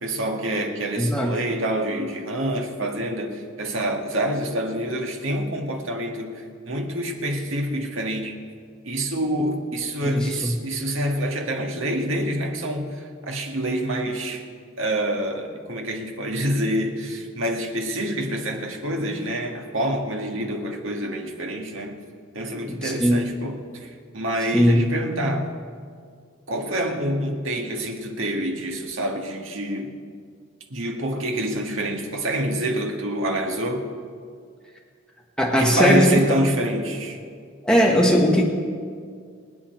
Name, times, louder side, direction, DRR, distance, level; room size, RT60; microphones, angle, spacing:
voice 1, 0.0-8.3 8.8-14.4 14.8-22.0 22.3-23.9 24.1-25.5 26.5-29.9 30.7-33.9 35.6-37.2, right 1 dB, 70° right, 2 dB, 1.8 m, -26 dB
voice 2, 1.0-1.3 10.0-10.5 22.8-23.2 24.5-24.8 35.4-36.2 37.6-38.4, equal, 5° left, -2 dB, 1.7 m, -19 dB
25.5 x 8.8 x 4.5 m, 2.1 s
head